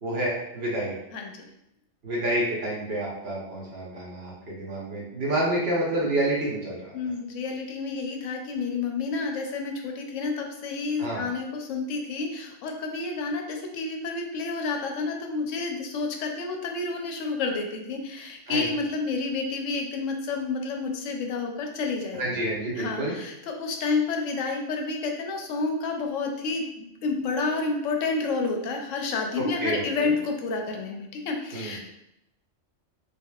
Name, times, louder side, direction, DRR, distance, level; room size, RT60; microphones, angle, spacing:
voice 1, 0.0-0.9 2.0-6.9 11.0-11.2 18.5-18.7 22.1-23.1 29.3-30.1 31.5-31.8, right 1 dB, 55° right, -4 dB, 1.2 m, -29 dB
voice 2, 1.1-1.4 6.9-22.4 22.8-31.8, left 4 dB, 90° left, 3 dB, 1.0 m, -30 dB
3.6 x 3.3 x 2.3 m, 0.82 s
omnidirectional pair, 1.3 m